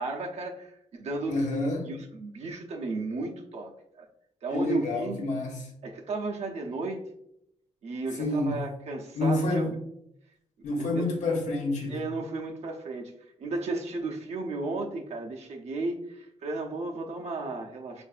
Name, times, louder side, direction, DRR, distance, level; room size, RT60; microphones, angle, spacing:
voice 1, 0.0-1.5 1.9-3.7 4.0-4.1 4.4-5.2 5.8-7.0 7.8-9.8 10.7-11.0 11.9-13.1 13.4-18.0, right 2 dB, 65° right, 0.6 m, -34 dB
voice 2, 1.3-1.9 4.5-5.6 8.2-8.6 9.1-9.7 10.6-12.0, left 2 dB, 85° left, 0.9 m, -28 dB
4.6 x 2.5 x 2.4 m
wide cardioid pair, 150°, 12 cm